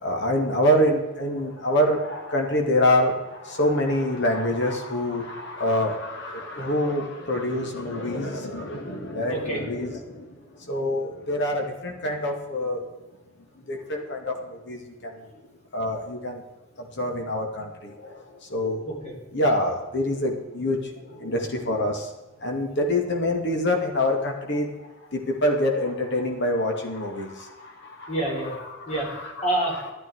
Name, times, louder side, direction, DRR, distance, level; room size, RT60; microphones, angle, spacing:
voice 1, 0.0-10.3 10.6-12.8 13.7-15.2 15.7-16.4 16.8-18.2 18.5-18.8 19.3-22.1 22.4-24.7 25.1-28.1 28.7-29.5, left 1 dB, 60° left, 2 dB, 2.2 m, -26 dB
voice 2, 9.3-9.6 18.8-19.1 22.7-22.8 28.1-28.5 28.9-29.1 29.4-29.9, right 1 dB, 35° left, -1 dB, 4.0 m, -27 dB
12.0 x 12.0 x 4.7 m, 1.1 s
head